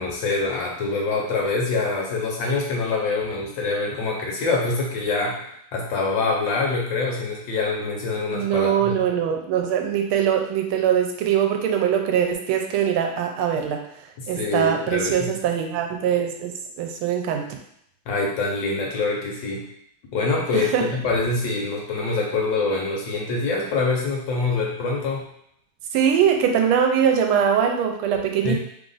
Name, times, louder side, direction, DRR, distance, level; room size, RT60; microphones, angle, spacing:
voice 1, 0.0-9.0 14.2-15.3 18.1-19.7 20.1-25.2 28.4-28.5, left 3 dB, 70° left, -2 dB, 1.4 m, -25 dB
voice 2, 8.3-13.8 14.3-16.5 16.8-17.5 20.5-20.8 25.9-28.5, right 8 dB, 85° right, 3 dB, 1.4 m, -22 dB
3.5 x 2.4 x 3.8 m, 0.71 s
omnidirectional pair, 2.3 m